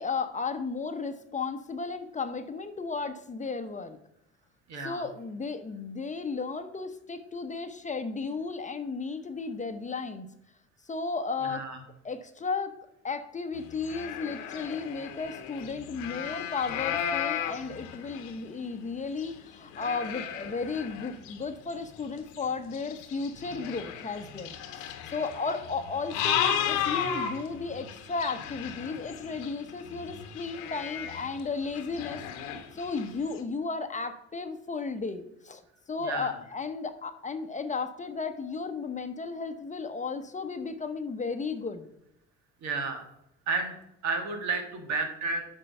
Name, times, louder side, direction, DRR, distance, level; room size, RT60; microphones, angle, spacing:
voice 1, 0.0-4.0 4.8-10.3 10.9-11.7 12.0-12.7 13.0-32.2 32.7-35.6 35.9-41.9, left 4 dB, 25° left, 8 dB, 0.8 m, -34 dB
voice 2, 4.7-5.0 11.5-11.8 36.0-36.4 42.6-43.0 43.5-43.7 44.0-45.5, right 3 dB, 65° right, 5 dB, 1.6 m, -31 dB
sound 1, 13.5-18.7 19.2-33.4, left 9 dB, 90° left, 1.0 m, -35 dB
7.6 x 4.5 x 5.4 m, 0.80 s
supercardioid pair, 75°, 30 cm